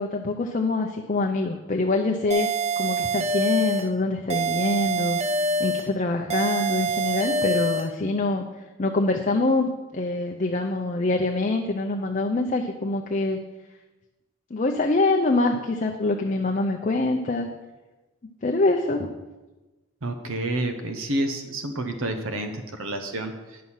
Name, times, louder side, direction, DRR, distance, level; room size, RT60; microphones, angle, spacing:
voice 1, 0.0-2.5 2.8-5.2 5.6-8.4 8.8-13.4 14.5-17.5 18.4-19.1, left 2 dB, 35° left, 2 dB, 0.6 m, -25 dB
sound 1, 2.3-3.9 4.3-5.9 6.3-7.9, right 2 dB, 30° right, 0.6 m, -25 dB
voice 2, 20.0-23.6, right 1 dB, 75° right, 6 dB, 0.9 m, -29 dB
10.5 x 6.2 x 5.6 m, 1.1 s
head